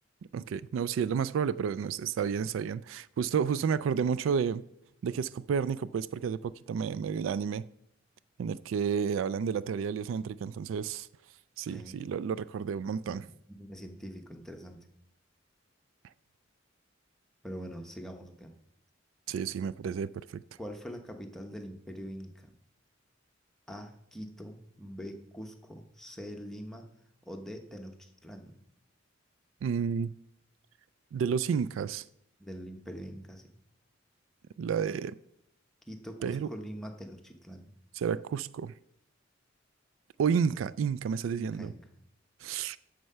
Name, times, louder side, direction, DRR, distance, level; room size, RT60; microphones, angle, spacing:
voice 1, 0.3-4.6 5.0-7.6 8.4-11.1 11.6-13.2 19.3-20.4 29.6-30.1 31.1-32.0 34.6-35.2 36.2-36.5 38.0-38.7 40.2-41.7 42.4-42.8, right 6 dB, 85° right, 0.3 m, -31 dB
voice 2, 11.7-12.0 13.0-13.2 13.6-14.9 17.4-18.5 19.8-19.9 20.6-22.5 23.7-26.9 27.3-28.6 32.4-33.5 35.9-37.7 41.3-42.0, equal, ahead, 0.9 m, -43 dB
7.8 x 6.6 x 5.5 m
head